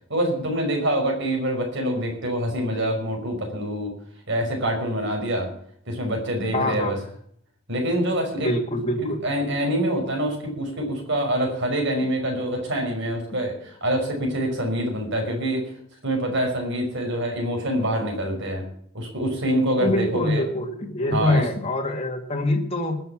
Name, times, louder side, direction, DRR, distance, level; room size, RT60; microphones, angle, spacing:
voice 1, 0.1-3.9 4.3-5.5 5.9-7.0 7.7-8.5 9.0-15.6 16.0-18.6 18.9-20.4 21.1-21.4, right 1 dB, 55° right, 2 dB, 5.4 m, -25 dB
voice 2, 6.5-7.0 8.4-9.2 19.8-23.0, left 1 dB, 30° left, 0 dB, 1.9 m, -24 dB
20.0 x 6.9 x 7.2 m, 0.65 s
head